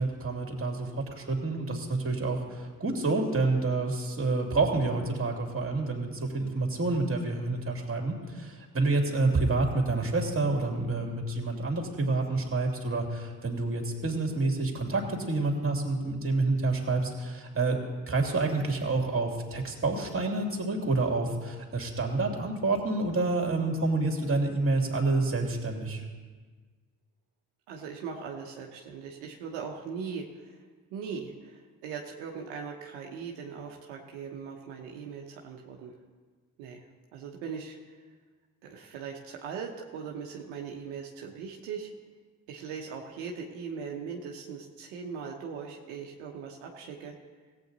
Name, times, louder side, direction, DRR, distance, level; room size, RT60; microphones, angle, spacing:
voice 1, 0.0-17.8 18.1-26.0, right 3 dB, 30° right, 2 dB, 2.7 m, -28 dB
voice 2, 27.7-30.6 30.9-35.9 36.6-36.8 37.1-38.0 38.6-41.9 42.5-47.1, right 6 dB, 85° right, 0 dB, 1.0 m, -40 dB
17.0 x 8.4 x 4.0 m, 1.4 s
hypercardioid pair, 45°, 41 cm